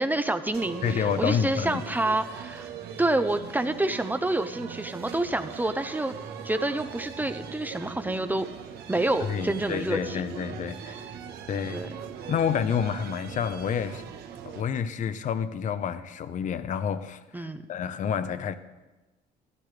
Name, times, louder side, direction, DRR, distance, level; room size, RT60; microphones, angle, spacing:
voice 1, 0.0-2.7 3.0-6.2 6.4-8.5 8.9-10.2 10.9-11.0 11.7-11.9 17.3-17.6, right 2 dB, 10° right, 0.7 m, -28 dB
sound 1, 0.5-14.6, right 8 dB, 75° right, 1.2 m, -41 dB
voice 2, 0.8-1.8 9.3-11.0 11.5-11.8 12.3-14.0 14.4-18.6, left 7 dB, 50° left, 0.8 m, -29 dB
15.5 x 13.5 x 3.4 m
cardioid pair, 110°, 17 cm